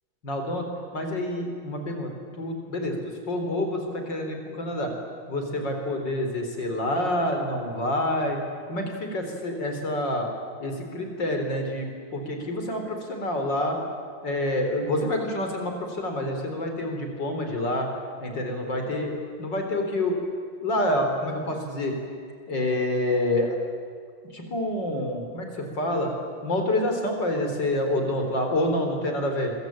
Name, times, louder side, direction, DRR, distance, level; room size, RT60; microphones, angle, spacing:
voice 1, 0.2-0.7 0.9-2.1 2.4-4.9 5.3-8.4 8.7-10.3 10.6-13.8 14.2-17.9 18.2-20.1 20.6-21.9 22.5-23.6 24.3-26.1 26.4-29.5, left 1 dB, 65° left, 4 dB, 4.9 m, -27 dB
27.0 x 23.0 x 9.0 m, 2.1 s
omnidirectional pair, 2.1 m